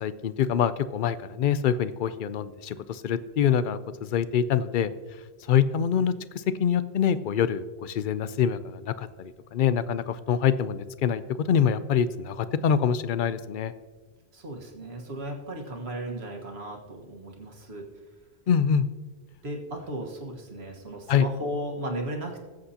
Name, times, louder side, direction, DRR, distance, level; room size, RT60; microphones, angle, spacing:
voice 1, 0.0-3.8 4.1-4.9 5.5-13.7 18.5-18.9 21.1-21.3, left 8 dB, 60° left, 14 dB, 0.6 m, -25 dB
voice 2, 14.3-17.9 19.4-22.4, right 1 dB, 70° right, 1 dB, 1.7 m, -35 dB
20.5 x 7.8 x 2.8 m, 1.4 s
omnidirectional pair, 1.1 m